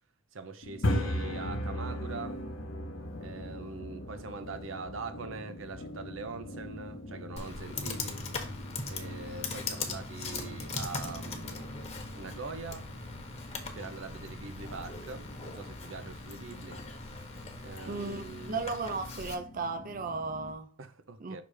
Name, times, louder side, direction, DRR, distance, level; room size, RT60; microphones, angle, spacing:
voice 1, 0.3-2.4 3.2-8.2 8.9-11.7 12.2-12.9 13.8-16.9 17.6-18.6 20.8-21.4, right 4 dB, 75° right, 0.7 m, -43 dB
sound 1, 0.6-20.5, left 1 dB, 65° left, 0.9 m, -40 dB
Computer keyboard, 7.4-19.3, left 4 dB, 30° left, 1.0 m, -40 dB
voice 2, 17.9-18.2 18.5-20.7 21.2-21.4, right 4 dB, 45° right, 0.5 m, -35 dB
5.8 x 3.4 x 4.9 m
head